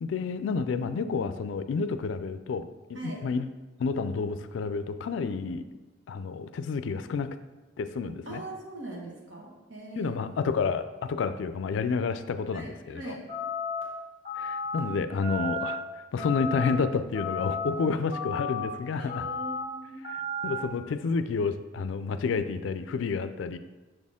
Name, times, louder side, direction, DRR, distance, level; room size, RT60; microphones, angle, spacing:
voice 1, 0.0-3.5 3.8-5.6 6.1-7.3 7.8-8.4 10.0-13.2 14.4-15.8 16.1-19.3 20.0-20.1 20.4-23.6, left 5 dB, 70° left, 11 dB, 0.3 m, -30 dB
voice 2, 8.2-10.3 12.5-13.2 19.0-20.0, right 2 dB, 75° right, -2 dB, 1.5 m, -41 dB
sound 1, 13.3-13.8 14.2-14.8 15.2-15.8 16.2-16.7 17.1-17.7 18.1-18.6 19.1-19.6 20.0-20.6, left 3 dB, 30° right, 1.6 m, -33 dB
6.6 x 4.2 x 3.6 m, 1.2 s
head